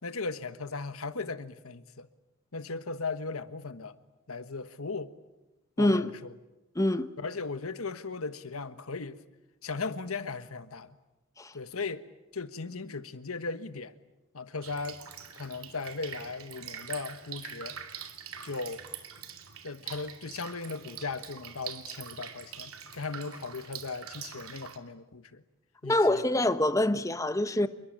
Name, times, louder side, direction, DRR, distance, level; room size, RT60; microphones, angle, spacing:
voice 1, 0.0-2.1 2.5-4.0 4.3-5.1 5.8-6.3 7.2-9.2 9.6-11.0 11.5-12.0 12.3-13.9 14.3-15.0 15.3-17.8 18.4-18.8 19.6-25.4 25.8-26.2 27.6-27.7, left 4 dB, 85° left, 1.4 m, -37 dB
voice 2, 5.8-6.1 6.8-7.1 11.4-11.5 25.8-27.7, left 1 dB, 15° left, 1.0 m, -25 dB
Drip, 14.6-24.8, right 8 dB, 90° right, 2.7 m, -44 dB
27.5 x 23.0 x 8.8 m
head